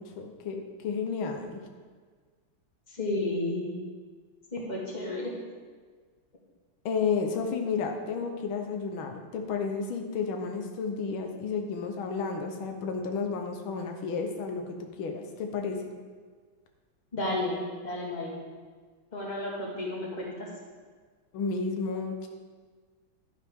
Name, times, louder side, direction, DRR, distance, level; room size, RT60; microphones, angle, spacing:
voice 1, 0.0-1.6 6.9-15.8 21.3-22.3, left 5 dB, 90° left, 4 dB, 1.8 m, -32 dB
voice 2, 2.9-3.7 4.5-5.4 17.1-18.4 19.1-20.5, left 1 dB, 20° left, -3 dB, 2.0 m, -32 dB
11.0 x 10.5 x 3.6 m, 1.5 s
omnidirectional pair, 2.2 m